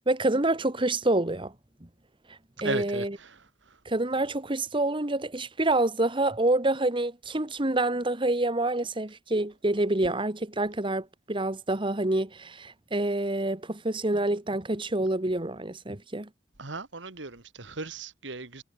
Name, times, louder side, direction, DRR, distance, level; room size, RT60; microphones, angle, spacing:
voice 1, 0.1-1.5 2.3-3.2 3.8-16.3, right 2 dB, 30° right, 1.6 m, -27 dB
voice 2, 2.6-3.1 16.6-18.6, right 3 dB, 80° right, 2.4 m, -35 dB
head